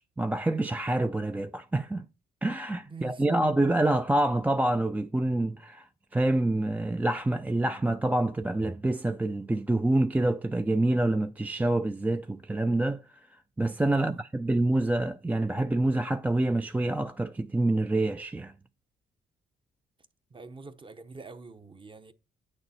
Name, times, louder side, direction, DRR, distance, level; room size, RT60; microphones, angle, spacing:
voice 1, 0.0-2.1 2.4-5.9 6.1-13.0 13.6-18.5, right 2 dB, 10° right, 0.3 m, -27 dB
voice 2, 2.9-3.5 14.0-14.2 20.3-22.1, right 4 dB, 25° right, 0.8 m, -44 dB
8.7 x 6.6 x 4.1 m
cardioid pair, 90°, 20 cm